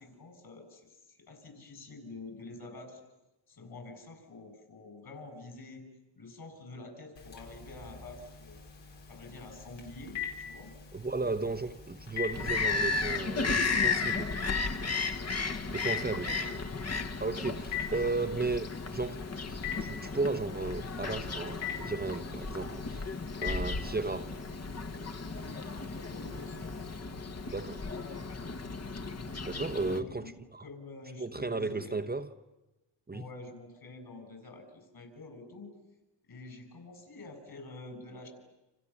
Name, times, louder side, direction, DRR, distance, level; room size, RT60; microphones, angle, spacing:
voice 1, 0.0-3.0 3.5-5.8 6.1-8.6 9.1-10.7 16.1-16.5 18.0-18.2 26.0-26.7 29.7-30.3 30.6-32.1 33.1-35.7 36.3-38.3, left 2 dB, 60° left, 7.6 m, -47 dB
Telephone, 7.2-27.0, left 7 dB, 80° left, 5.1 m, -44 dB
voice 2, 10.9-14.3 15.7-16.3 17.2-18.7 18.9-23.1 23.4-24.4 27.5-27.9 29.4-30.6 31.2-32.3 33.1-33.2, right 3 dB, 20° right, 1.0 m, -34 dB
Bird vocalization bird call bird song, 12.3-30.0, left 4 dB, 35° left, 1.5 m, -34 dB
29.5 x 27.5 x 7.3 m
cardioid pair, 90°, 43 cm